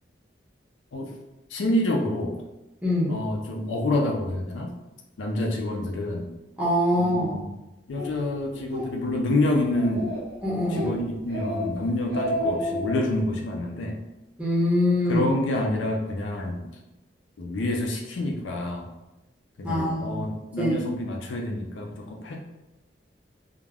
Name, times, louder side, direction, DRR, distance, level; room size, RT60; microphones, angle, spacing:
voice 1, 1.5-2.4 3.1-4.7 5.2-6.3 6.9-7.5 7.9-10.1 10.7-14.0 15.0-16.6 17.4-18.9 19.6-22.4, left 1 dB, 90° left, 1 dB, 0.5 m, -27 dB
voice 2, 2.8-3.2 6.6-7.4 10.4-11.0 14.4-15.3 19.6-20.2 20.6-20.7, left 1 dB, 5° right, -7 dB, 0.7 m, -24 dB
Speech, 8.0-8.1 8.6-8.9 9.2-9.3 9.7-10.3 10.7-10.9 11.3-11.7 12.0-13.0, equal, 65° right, 0.7 m, -30 dB
2.4 x 2.1 x 3.3 m, 0.98 s
head